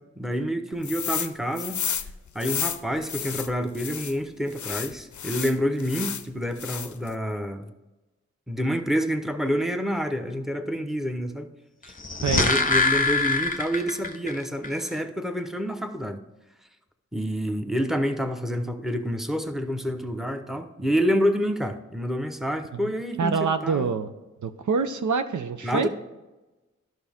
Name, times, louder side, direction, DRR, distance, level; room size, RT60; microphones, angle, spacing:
voice 1, 0.2-1.8 2.3-7.7 8.5-11.5 11.8-11.9 12.3-16.2 17.1-23.9 25.6-25.9, equal, ahead, 6 dB, 0.9 m, -28 dB
sound 1, 0.8-1.3 1.6-4.1 4.5-6.3 6.6-7.1, left 8 dB, 75° left, 0.5 m, -31 dB
sound 2, 11.9-14.3 14.6-14.7, left 3 dB, 30° left, 0.9 m, -23 dB
voice 2, 23.2-24.1 24.4-25.9, right 5 dB, 80° right, 9 dB, 0.6 m, -26 dB
11.0 x 6.2 x 3.6 m, 1.1 s
cardioid pair, 40°, 29 cm